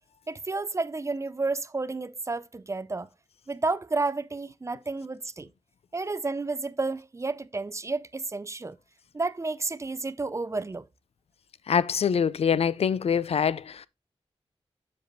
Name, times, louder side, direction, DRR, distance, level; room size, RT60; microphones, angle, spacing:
voice 1, 0.3-3.1 3.5-5.5 5.9-8.8 9.1-10.8, right 3 dB, 25° right, 0.4 m, -31 dB
voice 2, 11.7-13.9, left 7 dB, 70° left, 0.4 m, -24 dB
7.7 x 6.7 x 2.6 m
wide cardioid pair, 75°, 11 cm